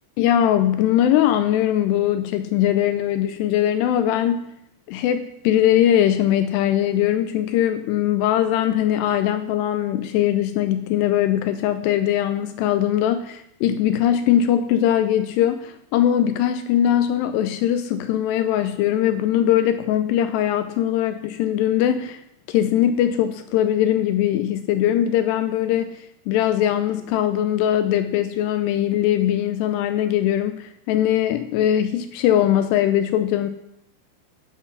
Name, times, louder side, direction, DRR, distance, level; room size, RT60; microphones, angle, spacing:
voice 1, 0.2-4.5 4.9-22.2 22.5-33.5, left 11 dB, 80° left, 10 dB, 2.6 m, -21 dB
12.5 x 6.1 x 5.6 m, 0.77 s
omnidirectional pair, 5.1 m